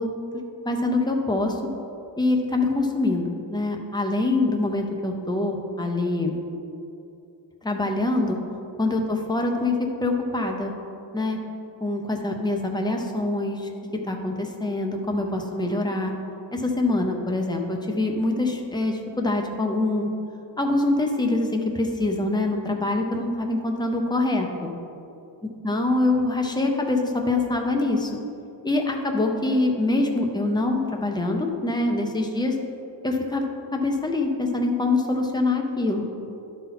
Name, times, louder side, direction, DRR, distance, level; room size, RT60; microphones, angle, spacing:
voice 1, 0.0-1.5 2.2-6.4 7.6-8.4 8.8-9.7 10.0-10.7 11.1-11.4 11.8-13.7 14.0-16.1 16.5-20.1 20.6-24.7 25.6-28.2 28.6-32.5 33.0-33.4 33.7-36.1, left 2 dB, 10° left, 1 dB, 0.7 m, -24 dB
10.5 x 4.2 x 5.8 m, 2.7 s
wide cardioid pair, 160°, 45 cm